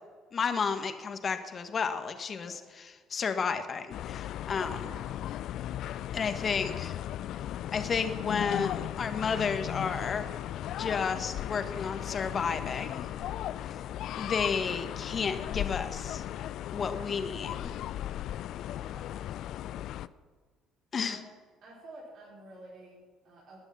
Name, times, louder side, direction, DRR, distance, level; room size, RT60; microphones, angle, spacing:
voice 1, 0.3-4.9 6.1-7.0 7.7-10.3 10.8-13.1 14.1-16.2 16.7-17.7 20.9-21.2, left 5 dB, 35° left, 8 dB, 1.6 m, -32 dB
voice 2, 2.4-2.7 4.8-5.2 13.1-13.5 18.9-19.2 21.1-21.2 21.6-23.6, right 2 dB, 50° right, -6 dB, 4.8 m, -51 dB
sound 1, 3.9-20.1, left 12 dB, 55° left, 0.4 m, -36 dB
19.5 x 11.0 x 5.8 m, 1.5 s
figure-of-eight pair, 55°, 0 cm